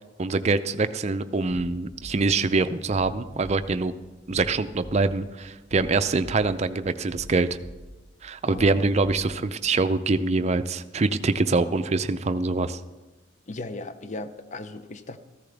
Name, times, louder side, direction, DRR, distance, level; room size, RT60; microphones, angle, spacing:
voice 1, 0.2-3.9 4.3-7.5 8.2-12.8, right 3 dB, 35° right, 11 dB, 0.5 m, -24 dB
sound 1, 1.5-9.8, equal, 60° left, 0.9 m, -45 dB
voice 2, 8.4-8.9 13.5-15.2, left 2 dB, 40° left, 11 dB, 0.6 m, -37 dB
14.0 x 14.0 x 3.4 m, 1.2 s
head